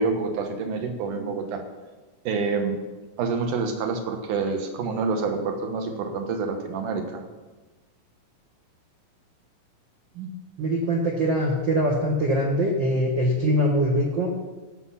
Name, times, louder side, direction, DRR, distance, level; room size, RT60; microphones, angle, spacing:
voice 1, 0.0-1.6 2.2-2.8 3.2-7.2, right 4 dB, 65° right, 5 dB, 2.6 m, -27 dB
voice 2, 10.6-14.4, equal, 80° right, 0 dB, 1.0 m, -23 dB
15.5 x 6.8 x 5.7 m, 1.2 s
omnidirectional pair, 4.2 m